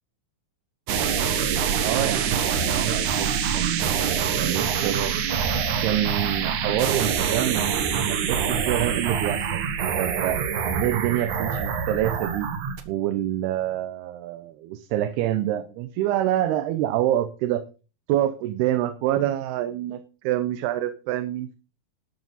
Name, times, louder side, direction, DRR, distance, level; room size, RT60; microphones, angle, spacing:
sound 1, 0.9-12.8, right 7 dB, 60° right, 2.5 m, -25 dB
voice 1, 1.8-5.2 5.8-12.5 12.9-17.6 18.1-21.6, right 12 dB, 85° right, 11 dB, 2.7 m, -27 dB
12.0 x 11.5 x 4.1 m, 0.35 s
omnidirectional pair, 4.5 m